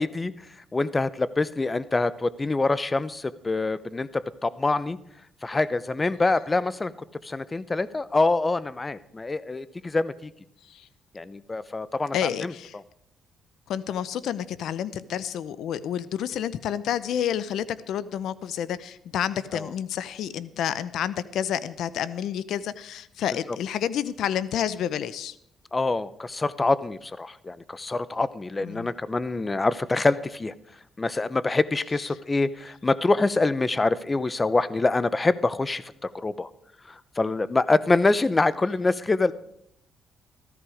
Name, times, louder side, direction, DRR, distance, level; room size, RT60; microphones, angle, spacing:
voice 1, 0.0-5.0 5.4-6.9 7.2-10.3 11.1-12.8 19.5-19.7 25.7-30.5 31.0-36.5 36.9-39.3, left 3 dB, 25° left, 16 dB, 0.7 m, -25 dB
voice 2, 12.1-12.7 13.7-25.4 28.6-28.9, left 9 dB, 75° left, 16 dB, 0.7 m, -29 dB
15.0 x 14.0 x 4.9 m, 0.73 s
cardioid pair, 90°, 0 cm